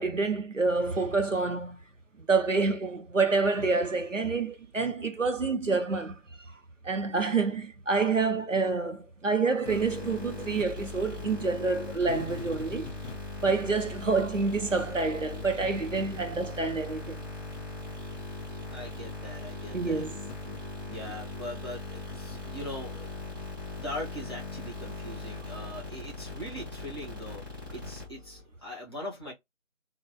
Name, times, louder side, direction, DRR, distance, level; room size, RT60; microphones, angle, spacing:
voice 1, 0.0-1.8 2.3-6.2 6.8-12.9 13.4-17.2 19.7-20.1, right 4 dB, 85° right, 0.9 m, -28 dB
sound 1, 9.6-28.4, left 2 dB, 15° right, 1.1 m, -39 dB
voice 2, 18.7-20.1 20.9-23.1 23.7-29.3, left 1 dB, 20° left, 1.2 m, -41 dB
3.2 x 2.4 x 2.2 m
figure-of-eight pair, 165°, 37 cm